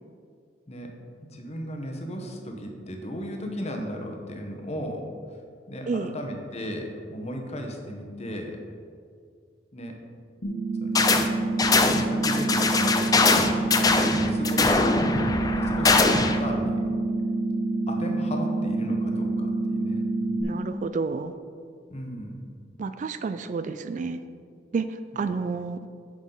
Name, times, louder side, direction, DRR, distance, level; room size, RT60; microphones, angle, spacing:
voice 1, 0.7-5.1 5.7-8.6 9.7-10.0 10.8-11.1 11.8-15.0 15.5-16.8 17.9-20.0 21.9-22.4 25.2-25.3, equal, 40° left, 2 dB, 1.0 m, -35 dB
sound 1, 10.4-20.4, right 2 dB, 60° left, 1.2 m, -27 dB
sound 2, 10.9-11.3 11.6-16.4, left 3 dB, 20° left, 0.4 m, -22 dB
voice 2, 20.4-21.3 22.8-24.2 24.7-25.9, right 4 dB, 45° right, 11 dB, 0.3 m, -30 dB
9.2 x 6.2 x 3.9 m, 2.1 s
head